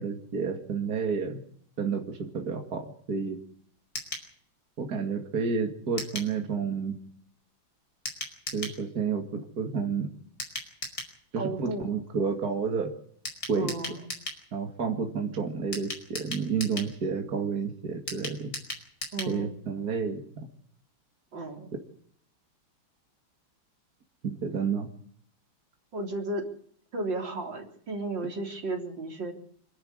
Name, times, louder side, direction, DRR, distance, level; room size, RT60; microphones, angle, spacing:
voice 1, 0.0-1.4 1.8-3.4 4.8-7.0 8.5-10.1 11.3-12.9 13.5-14.0 14.5-18.5 19.3-20.2 24.2-24.9, right 5 dB, 50° right, 4 dB, 2.6 m, -30 dB
sound 1, 3.9-4.3 6.0-6.3 8.1-8.8 10.4-11.1 13.3-14.4 15.7-16.9 18.1-19.4 19.7-19.8 20.0-20.1, left 1 dB, 45° left, 5.6 m, -37 dB
voice 2, 11.4-11.8 13.6-14.1 19.1-19.5 21.3-21.7 25.9-26.5 26.9-29.3, right 2 dB, 65° right, 3 dB, 4.3 m, -34 dB
26.0 x 12.0 x 9.5 m, 0.62 s
omnidirectional pair, 2.2 m